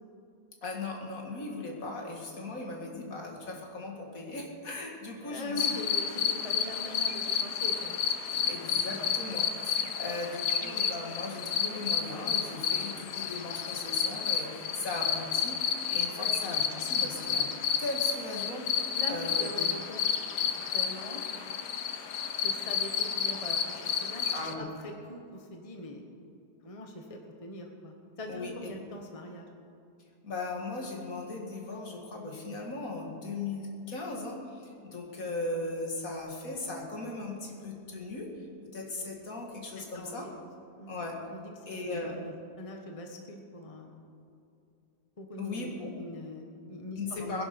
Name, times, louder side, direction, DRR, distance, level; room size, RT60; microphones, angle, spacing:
voice 1, 0.6-5.8 6.5-6.8 8.5-15.6 15.9-17.5 17.8-18.7 19.1-19.5 24.3-24.7 28.3-28.7 30.2-38.3 38.7-40.3 40.9-41.2 41.7-42.2 45.4-45.9 47.0-47.4, left 2 dB, 60° left, 1 dB, 2.4 m, -38 dB
voice 2, 5.2-8.0 8.3-9.5 18.9-20.0 20.5-21.2 22.4-26.1 26.6-29.5 39.8-40.3 40.8-41.0 41.3-44.0 45.2-47.4, left 1 dB, 25° left, 2 dB, 1.3 m, -43 dB
sound 1, 5.6-24.5, left 7 dB, 90° left, 1.5 m, -31 dB
21.0 x 10.5 x 5.3 m, 2.6 s
omnidirectional pair, 1.7 m